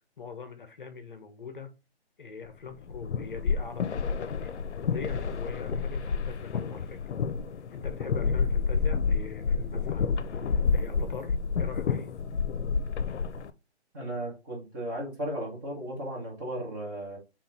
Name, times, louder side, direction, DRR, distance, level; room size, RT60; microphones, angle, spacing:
voice 1, 0.2-1.7 2.2-4.5 4.8-7.0 7.7-10.1 10.4-12.1, left 5 dB, 50° left, 0.8 m, -42 dB
sound 1, 2.7-13.5, left 5 dB, 85° left, 0.6 m, -29 dB
voice 2, 13.9-17.2, right 1 dB, 20° right, 1.2 m, -35 dB
4.5 x 3.0 x 3.3 m
hypercardioid pair, 165°, 34 cm